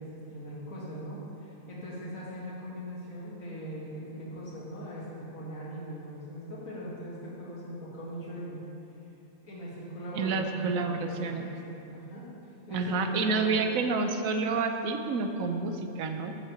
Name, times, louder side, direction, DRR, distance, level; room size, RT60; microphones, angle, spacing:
voice 1, 0.0-8.6 9.4-12.3 12.7-13.6, equal, 80° left, -6 dB, 2.5 m, -40 dB
voice 2, 10.1-11.5 12.7-16.3, right 4 dB, 80° right, 6 dB, 1.1 m, -29 dB
7.5 x 6.0 x 7.1 m, 2.8 s
omnidirectional pair, 1.4 m